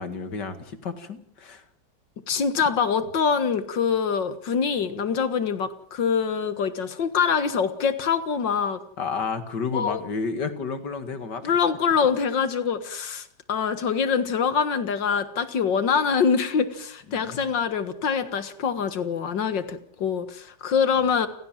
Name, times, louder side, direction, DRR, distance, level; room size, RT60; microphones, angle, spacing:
voice 1, 0.0-1.6 9.0-11.6 17.1-17.4, left 5 dB, 70° left, 9 dB, 2.6 m, -31 dB
voice 2, 2.3-8.8 9.7-10.0 11.4-21.3, left 6 dB, 85° left, 11 dB, 2.3 m, -24 dB
29.5 x 16.0 x 7.5 m, 0.65 s
omnidirectional pair, 1.9 m